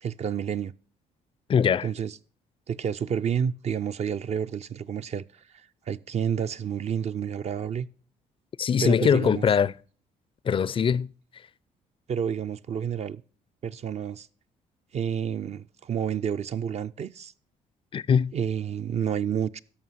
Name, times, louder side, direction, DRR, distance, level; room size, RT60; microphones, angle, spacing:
voice 1, 0.0-0.7 1.8-2.2 2.7-7.9 8.8-9.5 12.1-13.2 13.6-14.3 14.9-17.3 18.3-19.6, right 8 dB, 45° right, 0.4 m, -30 dB
voice 2, 1.5-1.9 8.6-9.7 10.5-11.1 17.9-18.3, left 7 dB, 35° left, 0.4 m, -22 dB
13.0 x 5.6 x 5.7 m
supercardioid pair, 70°, 15 cm